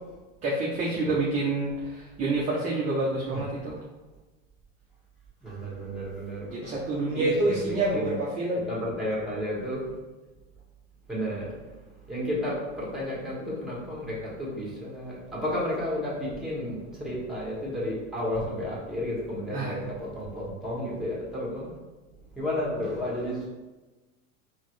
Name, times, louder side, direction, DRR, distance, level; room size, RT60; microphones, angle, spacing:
voice 1, 0.4-3.8 6.5-8.6 19.5-19.7, right 2 dB, 20° right, -4 dB, 0.3 m, -27 dB
voice 2, 5.4-6.9 7.1-8.2 8.5-10.0 11.1-21.8 22.3-23.5, left 1 dB, ahead, -6 dB, 1.3 m, -32 dB
4.1 x 2.0 x 3.0 m, 1.2 s
hypercardioid pair, 115°, 42 cm